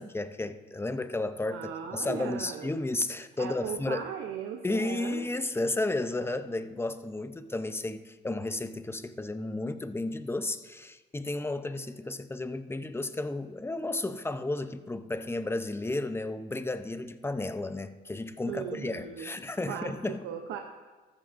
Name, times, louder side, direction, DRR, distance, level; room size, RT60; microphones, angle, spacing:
voice 1, 0.0-4.1 4.6-20.2, left 2 dB, 10° left, 10 dB, 0.6 m, -33 dB
voice 2, 1.5-2.7 3.4-5.3 18.5-19.3 19.7-20.6, right 8 dB, 90° right, 4 dB, 0.8 m, -38 dB
14.0 x 13.5 x 2.6 m, 1.3 s
cardioid pair, 90°, 20 cm